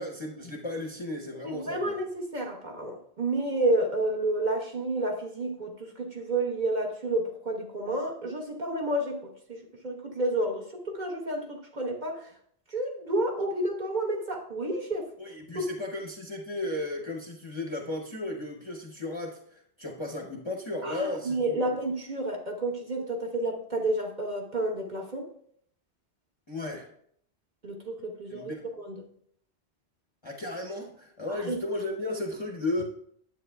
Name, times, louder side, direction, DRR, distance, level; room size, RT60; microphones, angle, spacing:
voice 1, 0.0-1.9 15.2-21.7 26.5-26.9 28.3-28.7 30.2-32.8, left 2 dB, 30° left, -1 dB, 0.7 m, -35 dB
voice 2, 1.4-12.3 12.7-15.1 15.5-15.7 20.8-25.3 27.6-29.0 31.3-31.6, right 1 dB, 40° right, -1 dB, 1.2 m, -30 dB
10.0 x 7.9 x 2.2 m, 0.66 s
omnidirectional pair, 1.2 m